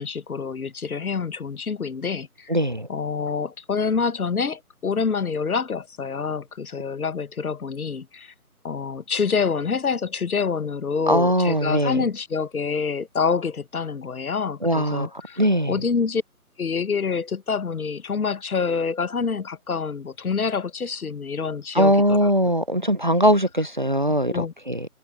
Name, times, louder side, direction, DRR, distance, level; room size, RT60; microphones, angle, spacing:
voice 1, 0.0-2.6 2.9-8.3 8.6-15.4 15.7-16.2 16.6-22.5 24.1-24.5, left 5 dB, 70° left, 1.1 m, -27 dB
voice 2, 2.5-2.9 11.1-12.0 14.6-15.1 15.4-15.8 21.7-24.9, equal, 35° right, 0.6 m, -21 dB
figure-of-eight pair, 160°, 45 cm